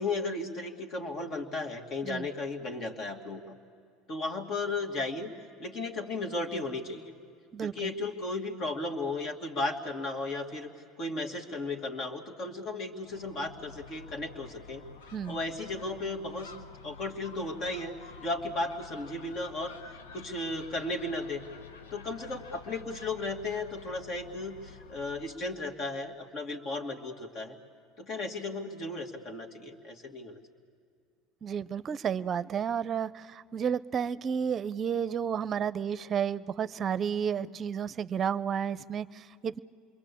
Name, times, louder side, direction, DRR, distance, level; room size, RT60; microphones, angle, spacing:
voice 1, 0.0-3.5 4.1-5.3 5.6-7.1 7.6-10.7 11.0-14.8 15.3-16.5 16.8-19.8 20.1-21.4 21.9-27.6 28.0-30.4, left 2 dB, 50° left, 4 dB, 2.4 m, -35 dB
voice 2, 7.5-7.9 15.1-15.4 31.4-39.6, right 7 dB, 35° right, 18 dB, 0.6 m, -32 dB
Gull seagull, 13.0-25.4, left 5 dB, 90° left, 1.1 m, -49 dB
27.0 x 22.5 x 8.5 m, 2.3 s
hypercardioid pair, 90°, 0 cm